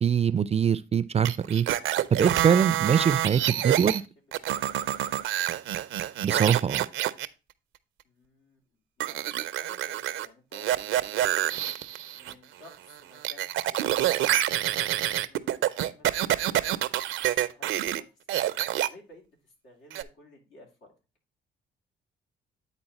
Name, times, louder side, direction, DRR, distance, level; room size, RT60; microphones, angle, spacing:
voice 1, 0.0-1.7 2.1-4.0 6.2-6.9, right 7 dB, 30° right, 0.4 m, -23 dB
sound 1, 1.2-4.0 4.3-7.3 9.0-10.3 10.5-12.3 12.7-18.0 18.3-18.9 19.9-20.0, right 13 dB, 80° right, 0.5 m, -27 dB
voice 2, 3.0-4.8 8.0-8.6 9.0-11.5 12.1-16.1 16.4-16.8 17.2-20.9, left 1 dB, 85° left, 2.9 m, -54 dB
9.0 x 4.2 x 4.1 m
cardioid pair, 90°, 20 cm